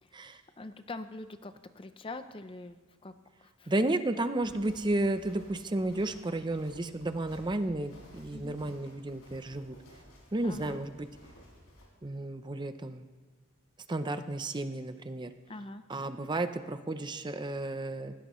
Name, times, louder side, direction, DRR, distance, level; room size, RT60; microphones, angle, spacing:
voice 1, 0.6-3.1 3.4-3.7 8.3-8.6 10.4-10.8 15.5-15.8, left 2 dB, 25° left, 10 dB, 0.5 m, -44 dB
voice 2, 3.7-9.8 10.3-11.1 12.0-13.0 13.9-15.3 15.9-18.1, right 2 dB, 20° right, 10 dB, 0.6 m, -32 dB
sound 1, 4.4-11.8, equal, 85° left, 5.7 m, -55 dB
20.0 x 16.5 x 3.1 m, 1.3 s
head